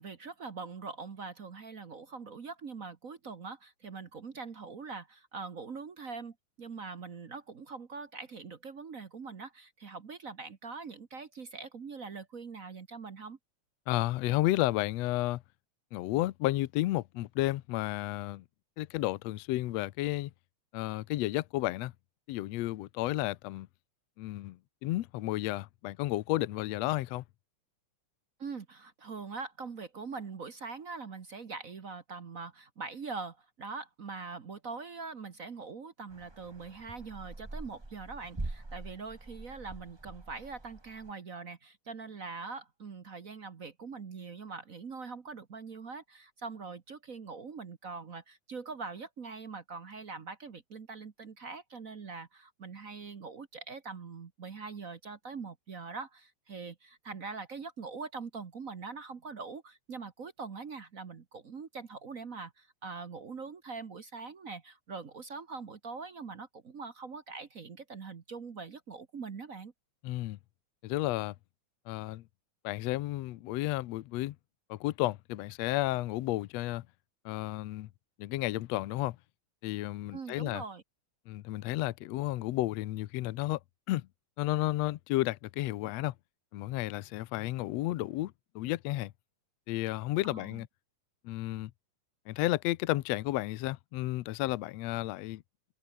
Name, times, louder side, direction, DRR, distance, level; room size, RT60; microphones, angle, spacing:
voice 1, 0.0-13.4 28.4-69.7 80.1-80.8 90.2-90.6, right 4 dB, 55° right, 0.9 m, -43 dB
voice 2, 13.9-15.4 15.9-18.4 18.8-20.3 20.7-21.9 22.3-23.7 24.2-27.2 70.0-70.4 70.8-71.3 71.9-72.2 72.6-74.3 74.7-76.8 77.2-77.9 78.2-79.2 79.6-80.6 81.3-83.6 83.9-84.1 84.4-86.1 86.5-89.1 89.7-90.7 91.2-91.7 92.3-95.4, left 17 dB, 75° left, 1.6 m, -32 dB
sound 1, 36.1-41.1, right 2 dB, 25° right, 0.5 m, -44 dB
omnidirectional pair, 3.6 m